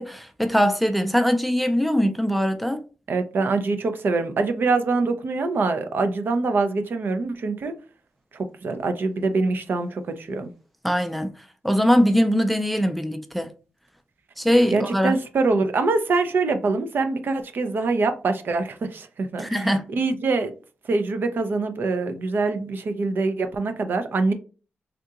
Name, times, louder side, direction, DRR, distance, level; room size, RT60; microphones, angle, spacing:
voice 1, 0.0-2.8 10.8-11.3 11.6-13.5 14.4-15.2 19.4-19.8, equal, ahead, 0.4 m, -21 dB
voice 2, 3.1-7.7 8.3-10.5 14.7-19.6 19.9-20.5 20.9-24.3, right 3 dB, 60° right, 0.5 m, -24 dB
3.6 x 2.8 x 2.4 m
cardioid pair, 90°, 4 cm